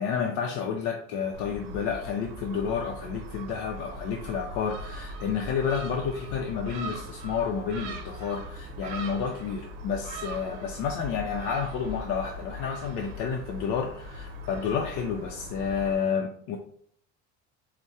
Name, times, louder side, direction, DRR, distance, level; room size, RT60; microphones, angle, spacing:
voice 1, 0.0-16.6, left 6 dB, 70° left, 2 dB, 0.5 m, -30 dB
Gull seagull, 1.3-15.9, right 1 dB, 85° right, 0.6 m, -40 dB
4.6 x 2.0 x 2.7 m, 0.63 s
cardioid pair, 135°, 31 cm